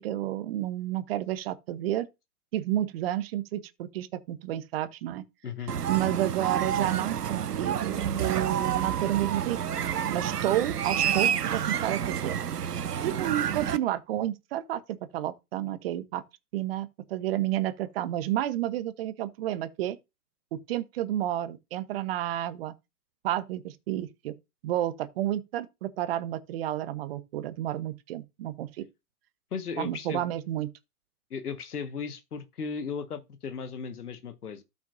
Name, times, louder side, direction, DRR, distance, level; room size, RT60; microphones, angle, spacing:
voice 1, 0.0-2.1 2.5-5.2 5.9-9.8 10.1-12.3 13.0-14.8 15.1-16.2 16.5-20.0 20.7-22.7 23.2-24.3 24.6-28.8 29.8-30.7, right 13 dB, 40° right, 1.0 m, -31 dB
sound 1, 5.7-13.8, right 9 dB, 85° right, 0.8 m, -29 dB
voice 2, 29.5-30.2 31.3-34.6, left 6 dB, 75° left, 1.6 m, -36 dB
13.0 x 5.9 x 2.6 m
hypercardioid pair, 125°, 46 cm